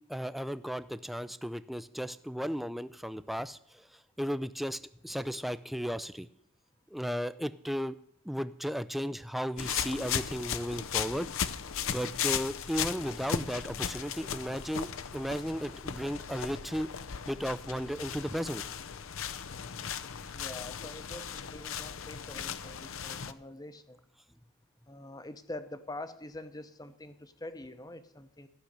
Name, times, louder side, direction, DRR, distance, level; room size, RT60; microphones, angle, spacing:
voice 1, 0.0-3.6 4.2-6.3 6.9-8.0 8.3-11.3 11.9-16.9 17.3-18.6, equal, ahead, 13 dB, 0.4 m, -35 dB
sound 1, 9.6-23.3, left 8 dB, 65° left, 0.6 m, -37 dB
voice 2, 20.3-24.1 24.9-28.5, left 1 dB, 15° left, 11 dB, 0.8 m, -45 dB
13.5 x 6.6 x 9.9 m, 0.72 s
head